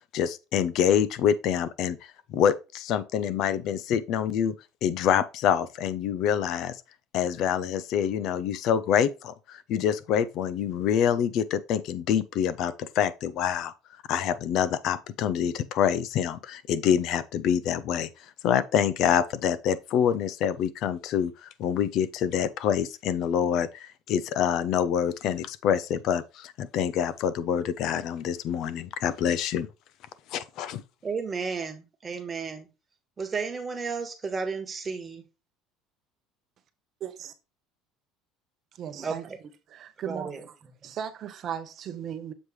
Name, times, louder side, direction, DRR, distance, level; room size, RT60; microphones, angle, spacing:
voice 1, 0.1-4.5 4.8-6.8 7.1-13.7 14.1-18.1 18.4-29.7 30.3-30.8, left 9 dB, 60° left, 0.6 m, -26 dB
voice 2, 31.0-32.7 33.2-35.2 39.0-39.4 40.0-40.4, right 5 dB, 25° right, 1.4 m, -33 dB
voice 3, 37.0-37.3 38.7-39.3 39.7-40.5 40.8-42.3, right 9 dB, 45° right, 0.8 m, -37 dB
7.2 x 3.1 x 4.8 m
cardioid pair, 120°, 0 cm